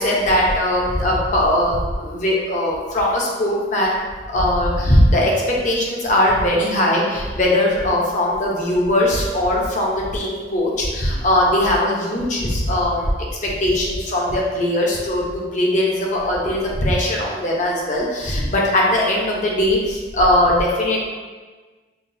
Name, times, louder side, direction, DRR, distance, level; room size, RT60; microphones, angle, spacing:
voice 1, 0.0-4.0 4.3-13.1 13.4-21.0, left 1 dB, 45° left, -3 dB, 0.7 m, -19 dB
5.7 x 2.2 x 2.7 m, 1.4 s
head